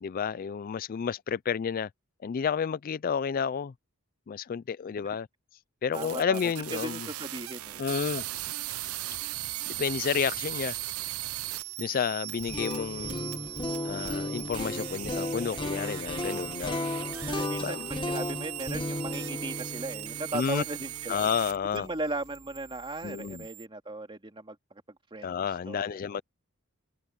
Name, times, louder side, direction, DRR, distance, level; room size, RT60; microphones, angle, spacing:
voice 1, 0.0-1.9 2.2-3.7 4.3-5.3 5.8-7.1 7.8-8.2 9.7-10.7 11.8-13.3 13.8-16.8 17.4-17.9 20.3-20.6 21.1-21.9 23.0-23.4 25.2-26.2, left 7 dB, 40° left, 0.3 m, -31 dB
voice 2, 5.9-7.8 17.3-21.2 21.7-24.8 25.1-25.3 25.7-26.0, right 2 dB, 25° right, 2.4 m, -37 dB
sound 1, 5.9-21.8 22.1-23.6, right 16 dB, 80° right, 0.6 m, -38 dB
sound 2, 12.3-22.3, left 1 dB, 25° left, 1.6 m, -35 dB
head